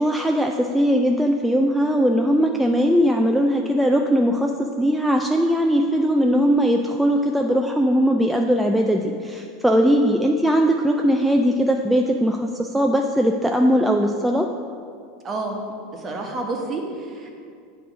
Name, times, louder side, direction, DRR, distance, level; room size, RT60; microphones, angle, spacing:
voice 1, 0.0-4.5 4.8-14.5, equal, 5° right, 2 dB, 0.4 m, -19 dB
voice 2, 15.2-17.4, right 2 dB, 30° right, 1 dB, 1.2 m, -30 dB
7.9 x 3.1 x 5.9 m, 2.3 s
hypercardioid pair, 90°, 0 cm